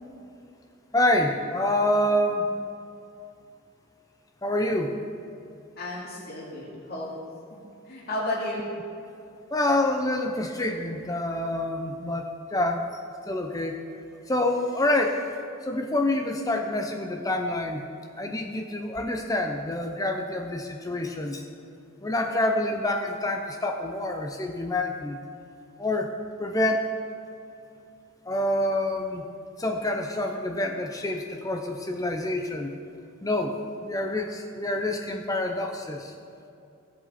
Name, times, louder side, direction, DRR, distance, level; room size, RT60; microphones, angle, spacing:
voice 1, 0.9-2.5 4.4-5.0 9.5-12.9 13.3-13.7 14.3-15.2 15.6-17.9 18.2-21.5 22.0-25.2 25.8-26.1 26.4-26.8 28.3-29.2 29.6-32.8 33.2-33.6 33.8-36.1, left 1 dB, 15° left, 3 dB, 0.6 m, -27 dB
voice 2, 5.8-7.1 7.9-8.7, left 1 dB, 45° left, -5 dB, 2.5 m, -32 dB
16.5 x 7.6 x 4.2 m, 2.6 s
head